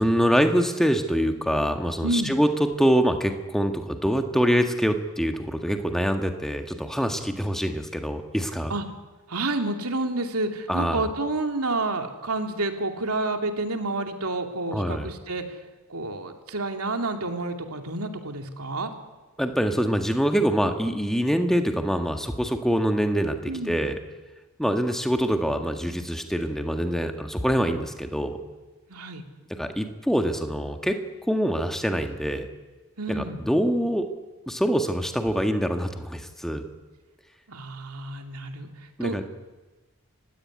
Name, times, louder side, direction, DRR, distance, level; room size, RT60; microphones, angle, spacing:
voice 1, 0.0-8.7 10.7-11.1 14.7-15.1 19.4-24.0 24.6-28.4 29.6-31.0 31.3-32.5 33.1-34.1 34.5-36.6 39.0-39.2, equal, ahead, 5 dB, 1.7 m, -25 dB
voice 2, 9.3-15.4 15.9-18.9 23.5-23.8 28.9-29.2 33.0-33.4 37.5-38.7 39.0-39.3, right 2 dB, 85° right, 5 dB, 2.7 m, -29 dB
29.0 x 16.5 x 9.7 m, 1.2 s
head